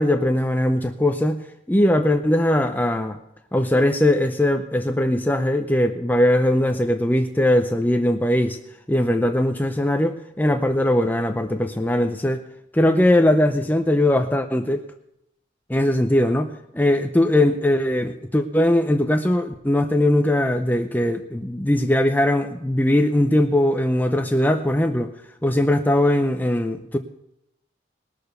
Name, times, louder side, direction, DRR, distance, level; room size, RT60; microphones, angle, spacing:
voice 1, 0.0-3.2 3.5-8.6 8.9-12.4 12.7-14.8 15.7-25.1 25.4-27.0, left 1 dB, 10° left, 6 dB, 0.5 m, -20 dB
19.5 x 6.7 x 6.7 m, 0.83 s
head